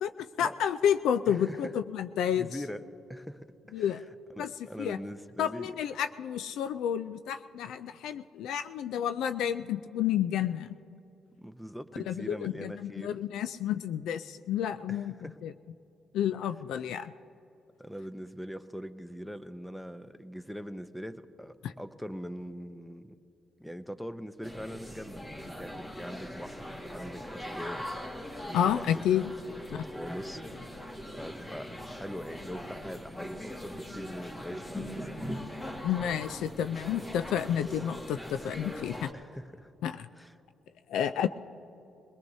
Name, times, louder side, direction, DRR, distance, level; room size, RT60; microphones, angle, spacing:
voice 1, 0.0-2.5 3.7-4.0 4.4-4.5 4.8-5.0 5.4-10.7 11.9-15.1 15.4-15.5 16.1-17.1 21.6-21.7 28.5-29.3 29.7-29.8 35.8-39.1 39.8-40.1 40.9-41.3, left 9 dB, 85° left, 10 dB, 0.4 m, -30 dB
voice 2, 1.3-1.7 2.3-4.0 4.4-5.7 11.4-13.2 14.9-15.4 17.8-23.1 23.6-28.8 29.4-35.1 39.1-39.7 40.2-40.3, equal, 5° left, 11 dB, 0.7 m, -42 dB
sound 1, 24.4-39.1, equal, 20° left, 1.8 m, -41 dB
22.5 x 18.5 x 2.7 m, 2.9 s
cardioid pair, 90°, 0 cm